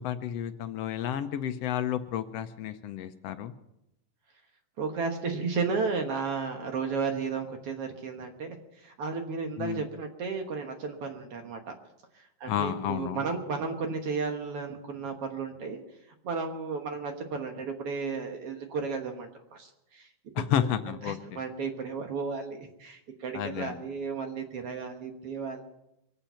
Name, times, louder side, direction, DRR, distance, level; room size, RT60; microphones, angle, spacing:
voice 1, 0.0-3.5 9.6-9.9 12.5-13.2 20.3-21.4 23.3-23.8, left 10 dB, 70° left, 10 dB, 1.6 m, -31 dB
voice 2, 4.8-11.6 12.4-15.8 16.2-20.1 20.4-20.5 21.1-25.6, right 5 dB, 55° right, 4 dB, 2.0 m, -33 dB
24.0 x 8.7 x 5.7 m, 0.86 s
omnidirectional pair, 3.4 m